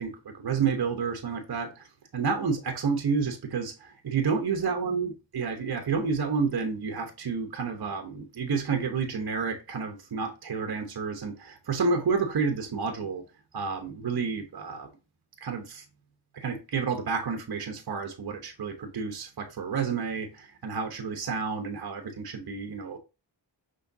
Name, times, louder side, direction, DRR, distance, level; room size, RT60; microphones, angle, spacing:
voice 1, 0.0-1.8 2.1-13.2 13.5-14.9 15.4-15.8 16.3-23.0, right 5 dB, 55° right, 1.0 m, -30 dB
5.7 x 3.1 x 2.7 m
cardioid pair, 50°, 44 cm